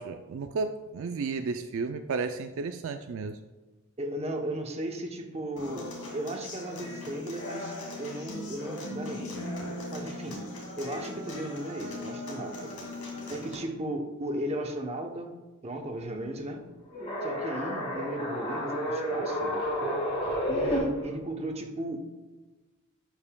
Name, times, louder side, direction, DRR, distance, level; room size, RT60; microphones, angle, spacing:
voice 1, 0.0-3.4, right 4 dB, 65° right, 7 dB, 0.4 m, -33 dB
voice 2, 4.0-9.4 9.9-10.4 10.8-12.7 13.3-15.3 15.6-16.6 17.2-19.6 20.5-22.0, right 1 dB, 30° right, 3 dB, 0.8 m, -36 dB
Human voice / Acoustic guitar, 5.6-13.5, left 1 dB, 85° left, 2.2 m, -39 dB
sound 1, 16.9-20.8, equal, 25° left, 2.2 m, -30 dB
11.5 x 5.3 x 2.2 m, 1.2 s
head